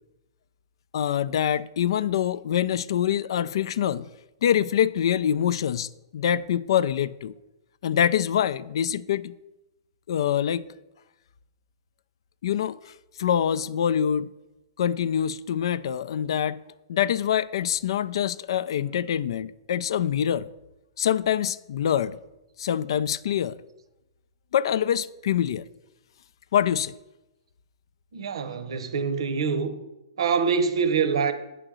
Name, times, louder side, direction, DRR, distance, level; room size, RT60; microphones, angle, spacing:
voice 1, 0.9-4.1 4.4-7.3 7.8-9.3 10.1-10.7 12.4-12.9 13.2-14.3 14.8-16.6 16.9-20.5 21.0-22.2 22.6-23.6 24.5-25.7 26.5-26.9, left 9 dB, 65° left, 0.3 m, -25 dB
voice 2, 28.1-29.8 30.2-31.3, right 5 dB, 75° right, 0.8 m, -25 dB
7.9 x 3.8 x 6.1 m
hypercardioid pair, 150°, 3 cm